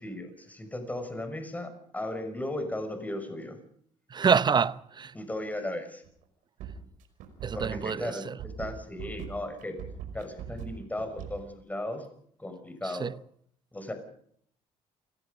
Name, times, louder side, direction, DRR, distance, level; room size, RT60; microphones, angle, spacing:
voice 1, 0.0-3.6 5.1-6.0 7.5-9.8 10.1-12.1 12.4-13.1 13.7-13.9, left 1 dB, 10° left, 5.9 m, -36 dB
voice 2, 4.1-5.1 7.4-8.4 12.8-13.1, right 6 dB, 35° right, 0.7 m, -27 dB
sound 1, 6.0-6.2 6.6-11.4, right 10 dB, 80° right, 5.4 m, -40 dB
29.5 x 17.5 x 5.3 m
supercardioid pair, 85°, 13 cm